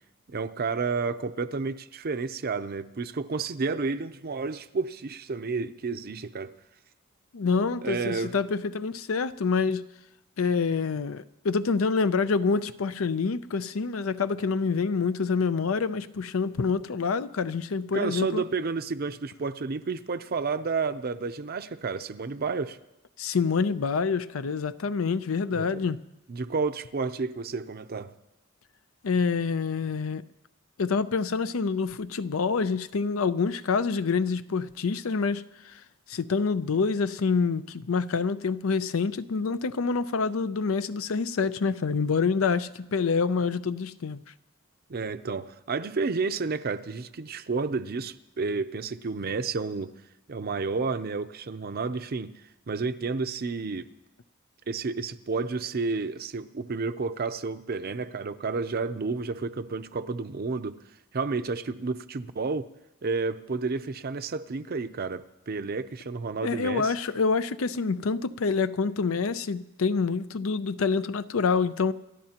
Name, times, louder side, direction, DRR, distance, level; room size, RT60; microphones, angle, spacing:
voice 1, 0.3-6.5 7.8-8.4 17.9-22.8 25.5-25.9 26.3-28.1 44.9-49.9 50.3-52.3 52.7-53.9 54.7-60.8 61.1-62.7 63.0-66.9, right 4 dB, 50° right, 0.6 m, -31 dB
voice 2, 7.3-9.8 10.4-18.4 23.2-26.0 29.0-30.2 30.8-35.4 36.1-44.2 66.4-71.9, left 5 dB, 85° left, 0.5 m, -27 dB
29.0 x 13.0 x 2.9 m
head